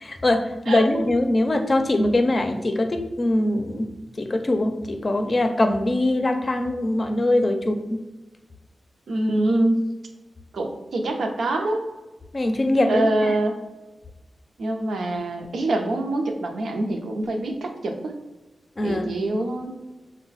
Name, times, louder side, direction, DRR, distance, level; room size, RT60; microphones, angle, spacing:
voice 1, 0.0-3.9 4.2-8.0 12.3-13.4 18.8-19.1, left 1 dB, 35° left, 6 dB, 0.5 m, -22 dB
voice 2, 9.1-9.8 10.5-11.9 12.9-13.6 14.6-18.2 18.8-19.7, right 2 dB, 90° right, 3 dB, 0.6 m, -25 dB
5.7 x 2.2 x 4.0 m, 1.1 s
wide cardioid pair, 100°, 0 cm